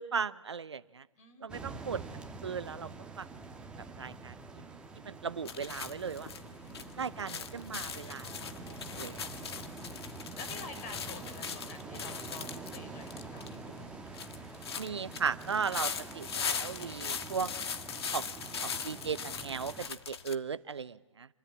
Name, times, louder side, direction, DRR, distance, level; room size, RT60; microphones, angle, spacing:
voice 1, 0.0-1.0 1.4-2.0 2.4-2.9 3.2-3.3 4.0-4.3 5.0-6.3 7.0-8.3 8.9-9.2 14.8-17.5 18.1-18.3 18.6-21.3, right 6 dB, 55° right, 16 dB, 0.9 m, -36 dB
voice 2, 1.2-2.2 8.2-9.2 9.5-13.5, left 4 dB, 25° left, 6 dB, 5.0 m, -50 dB
sound 1, 1.5-19.9, right 3 dB, 5° right, 1.5 m, -46 dB
sound 2, 5.4-20.3, left 6 dB, 50° left, 1.6 m, -40 dB
27.0 x 25.5 x 8.6 m, 1.1 s
figure-of-eight pair, 135°, 17 cm